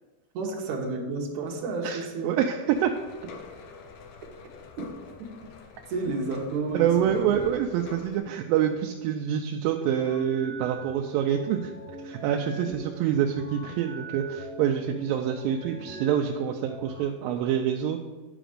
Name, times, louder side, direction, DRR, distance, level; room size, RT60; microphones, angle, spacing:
voice 1, 0.3-2.4 4.8-4.9 5.2-5.3 5.9-7.3, right 3 dB, 65° right, -2 dB, 2.5 m, -31 dB
voice 2, 1.8-2.9 6.7-11.7 12.0-18.0, right 9 dB, 90° right, 3 dB, 2.3 m, -26 dB
sound 1, 2.7-8.2, left 5 dB, 75° left, 1.6 m, -46 dB
sound 2, 10.0-17.0, right 1 dB, 35° right, 1.0 m, -42 dB
10.0 x 5.0 x 5.1 m, 1.2 s
omnidirectional pair, 4.0 m